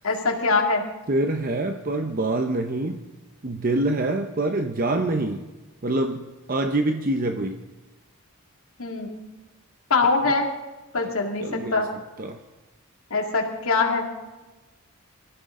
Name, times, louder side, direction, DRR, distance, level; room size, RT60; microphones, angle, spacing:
voice 1, 0.0-0.8 8.8-9.2 9.9-10.5 10.9-11.9 13.1-14.1, left 3 dB, 75° left, 2 dB, 2.4 m, -23 dB
voice 2, 1.1-3.0 3.4-5.4 5.8-6.2 6.5-7.6 11.0-11.1 11.4-11.9 12.2-12.4, right 2 dB, 40° right, 5 dB, 0.8 m, -25 dB
25.0 x 14.0 x 3.8 m, 1.2 s
head